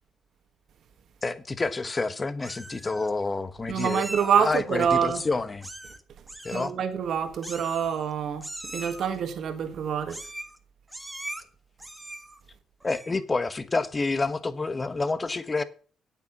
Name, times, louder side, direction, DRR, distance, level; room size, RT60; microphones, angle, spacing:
voice 1, 1.2-4.0 4.4-5.7 6.4-6.7 12.8-15.6, left 3 dB, 25° left, 1.2 m, -28 dB
Meow, 1.7-2.1 2.4-3.1 3.8-4.6 5.6-6.0 6.3-6.7 7.4-8.1 8.4-9.2 10.1-10.6 10.9-11.4 11.8-12.4 12.8-13.2, right 1 dB, 10° right, 1.5 m, -40 dB
voice 2, 3.7-5.2 6.5-10.2, right 7 dB, 65° right, 1.5 m, -26 dB
9.0 x 8.9 x 6.0 m
cardioid pair, 90°, 0 cm